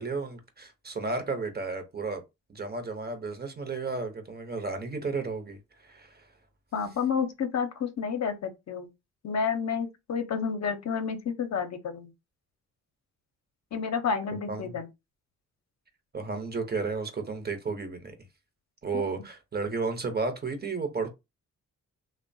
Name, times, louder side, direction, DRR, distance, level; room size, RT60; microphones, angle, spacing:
voice 1, 0.0-2.2 2.5-6.3 14.5-14.8 16.1-18.1 18.8-21.1, right 4 dB, 30° right, 0.7 m, -33 dB
voice 2, 6.7-8.9 9.2-12.1 13.7-14.9 18.9-19.0, left 6 dB, 55° left, 0.6 m, -30 dB
2.8 x 2.1 x 2.6 m
cardioid pair, 85°, 33 cm